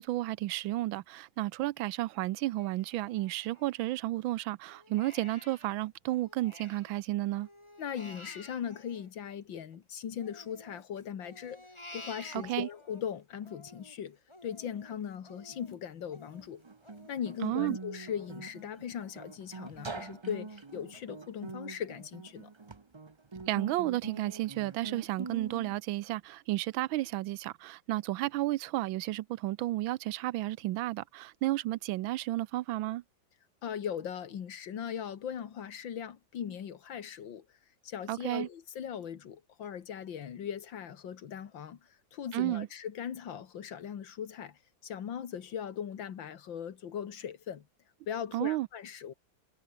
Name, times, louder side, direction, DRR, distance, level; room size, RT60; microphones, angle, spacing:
voice 1, 0.0-7.5 12.3-12.7 17.4-17.8 23.5-33.0 38.1-38.5 42.3-42.7 48.3-48.7, right 16 dB, 85° right, 1.4 m, -32 dB
Crying sobbing, 2.6-4.2 4.6-7.0 7.3-9.8 10.2-13.0 13.4-18.9 19.3-19.4 19.8-20.4 20.9-21.0 21.5-21.6, left 1 dB, 15° left, 3.7 m, -53 dB
voice 2, 7.8-11.7 11.9-16.6 17.1-22.5 33.6-37.5 37.8-47.7 48.1-49.1, left 8 dB, 70° left, 2.2 m, -39 dB
Guitar, 16.4-25.8, right 4 dB, 50° right, 0.3 m, -44 dB
omnidirectional pair, 2.1 m